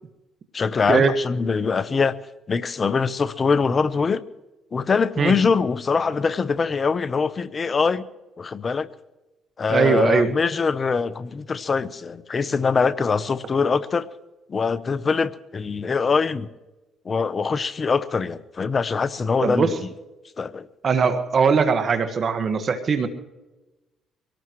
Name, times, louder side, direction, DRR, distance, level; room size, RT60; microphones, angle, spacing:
voice 1, 0.5-2.2 2.5-4.2 4.7-8.1 8.4-8.9 9.6-14.1 14.5-16.5 17.0-19.7 20.4-20.7, left 5 dB, 40° left, 16 dB, 0.8 m, -23 dB
voice 2, 9.7-10.3 19.4-19.7 20.8-23.1, right 5 dB, 50° right, 8 dB, 1.7 m, -20 dB
24.0 x 18.0 x 3.1 m, 1.1 s
supercardioid pair, 70°, 0 cm